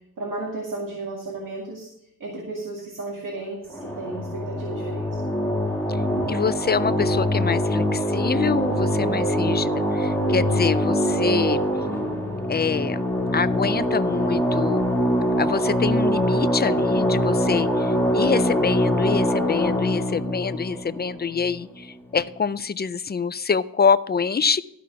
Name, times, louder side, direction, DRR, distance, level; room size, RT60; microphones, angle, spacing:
voice 1, 0.2-1.9 2.2-5.2 6.2-6.3, right 2 dB, 60° right, -1 dB, 2.2 m, -34 dB
sound 1, 3.7-21.8, equal, 5° left, 1.5 m, -23 dB
voice 2, 6.3-11.6 12.5-13.0 13.3-14.8 15.4-24.6, left 6 dB, 30° left, 15 dB, 0.4 m, -25 dB
13.0 x 6.1 x 6.0 m, 0.80 s
wide cardioid pair, 150°, 36 cm